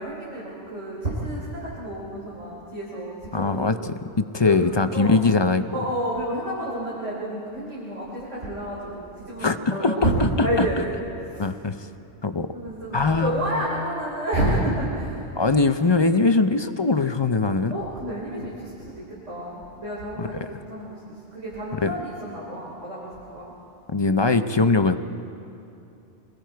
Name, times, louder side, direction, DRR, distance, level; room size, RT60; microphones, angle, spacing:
voice 1, 0.0-3.9 4.4-4.6 4.9-5.1 5.7-11.0 11.3-11.5 12.5-15.2 17.7-23.5, right 1 dB, 90° right, -6 dB, 3.9 m, -30 dB
voice 2, 3.3-5.6 9.4-10.7 11.4-11.8 12.2-12.5 12.9-13.6 15.4-17.8 20.2-20.5 21.8-21.9 23.9-25.0, left 3 dB, 30° left, 9 dB, 0.5 m, -21 dB
28.0 x 21.0 x 4.6 m, 2.7 s
omnidirectional pair, 1.2 m